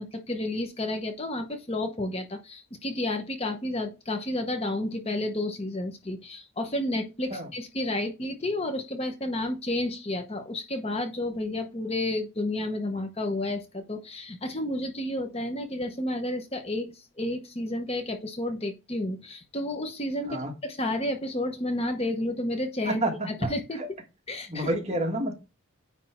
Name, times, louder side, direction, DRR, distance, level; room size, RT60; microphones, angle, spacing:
voice 1, 0.0-23.0 23.3-23.8 24.3-24.7, left 1 dB, 25° left, 1.0 m, -31 dB
voice 2, 22.9-23.5 23.8-23.9 24.5-25.3, right 1 dB, 30° right, 1.5 m, -29 dB
9.6 x 3.5 x 4.4 m
head